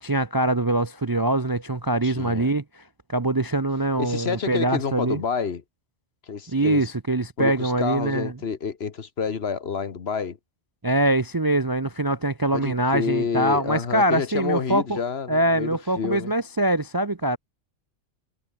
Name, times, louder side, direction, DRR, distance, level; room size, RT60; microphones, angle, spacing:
voice 1, 0.0-2.8 3.1-5.2 6.5-8.3 10.8-15.0 15.3-17.4, right 1 dB, 25° right, 0.6 m, -23 dB
voice 2, 2.0-2.5 4.0-5.6 6.3-6.9 7.4-10.4 12.5-16.3, left 6 dB, 55° left, 1.4 m, -29 dB
omnidirectional pair, 1.3 m